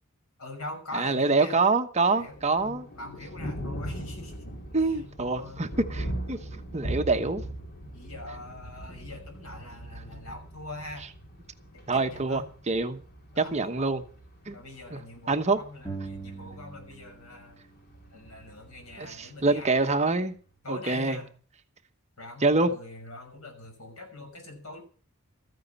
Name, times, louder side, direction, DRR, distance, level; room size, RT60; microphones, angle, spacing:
voice 1, 0.4-1.6 2.1-4.4 4.7-5.7 7.9-11.1 11.7-12.5 13.3-14.0 14.5-17.6 18.1-20.0 20.6-21.3 22.2-24.8, left 2 dB, 75° left, 6.0 m, -43 dB
voice 2, 1.0-2.8 4.7-6.4 6.7-7.4 11.9-12.4 12.7-13.0 13.4-14.0 14.5-14.6 14.9-15.0 15.3-15.6 19.0-20.3 20.7-21.2 22.4-22.7, right 3 dB, 30° right, 1.1 m, -25 dB
Thunder, 2.2-20.1, right 1 dB, 45° left, 3.1 m, -41 dB
sound 1, 15.8-17.4 17.6-19.4, right 4 dB, 20° left, 2.9 m, -43 dB
14.0 x 9.5 x 6.9 m
head